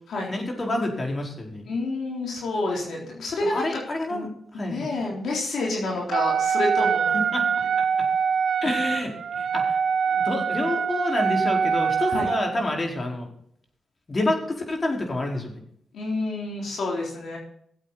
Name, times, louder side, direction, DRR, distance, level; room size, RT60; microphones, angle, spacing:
voice 1, 0.3-1.7 3.4-4.9 7.1-7.6 8.0-8.1 8.6-9.8 10.1-13.3 14.1-15.6, left 1 dB, 40° left, 1 dB, 4.8 m, -28 dB
voice 2, 1.7-3.7 4.1-4.3 4.5-7.2 12.1-12.3 15.9-17.4, left 2 dB, 80° left, -1 dB, 3.6 m, -28 dB
Wind instrument woodwind instrument, 6.1-12.6, right 6 dB, 75° right, 0.5 m, -24 dB
18.0 x 8.1 x 4.2 m, 0.68 s
cardioid pair, 60°, 0 cm